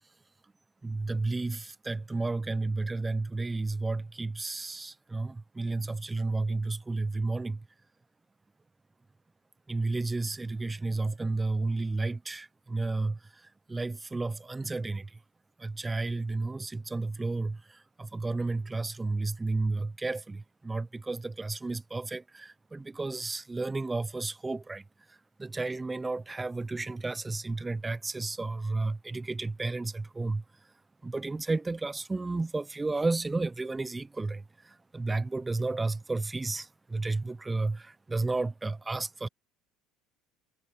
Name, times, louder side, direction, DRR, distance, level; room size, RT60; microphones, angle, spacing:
voice 1, 0.8-7.6 9.7-15.2 15.6-24.8 25.1-30.4 31.0-39.3, right 3 dB, 15° right, 0.9 m, -32 dB
hypercardioid pair, 70°, 0 cm